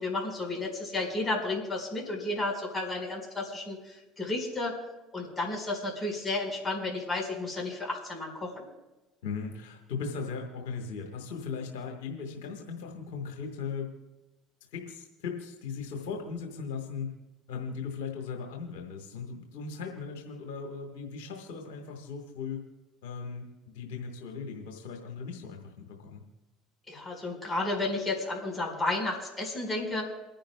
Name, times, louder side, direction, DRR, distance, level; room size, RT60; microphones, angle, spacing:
voice 1, 0.0-4.7 5.1-8.6 26.9-30.1, left 2 dB, 25° left, 0 dB, 5.1 m, -32 dB
voice 2, 9.2-13.9 14.7-17.1 17.5-22.6 23.0-26.2, left 5 dB, 80° left, 2 dB, 1.6 m, -38 dB
29.0 x 10.0 x 2.3 m, 1.1 s
hypercardioid pair, 75°, 0 cm